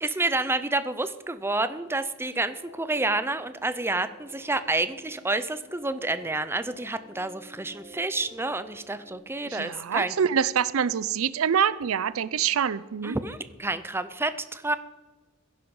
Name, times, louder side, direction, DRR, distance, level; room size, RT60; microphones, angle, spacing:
voice 1, 0.0-10.2 13.0-14.8, right 2 dB, 10° right, 12 dB, 0.6 m, -29 dB
sound 1, 2.4-9.1, left 1 dB, 65° left, 3.1 m, -51 dB
voice 2, 9.5-13.2, right 7 dB, 70° right, 17 dB, 0.5 m, -25 dB
16.0 x 10.5 x 5.4 m, 1.2 s
head